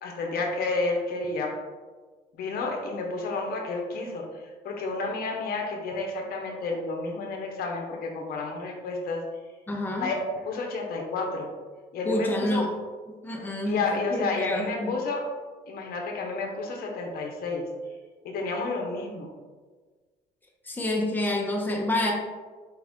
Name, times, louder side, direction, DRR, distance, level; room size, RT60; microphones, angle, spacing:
voice 1, 0.0-1.6 2.4-9.2 10.0-11.5 11.9-12.6 13.6-15.2 15.7-17.7 18.2-19.3, left 3 dB, 65° left, 1 dB, 0.8 m, -31 dB
voice 2, 9.7-10.1 12.1-12.7 13.2-13.8 14.1-14.9 20.6-22.1, left 1 dB, 10° left, -2 dB, 0.8 m, -27 dB
4.6 x 2.4 x 3.5 m, 1.4 s
cardioid pair, 110°, 17 cm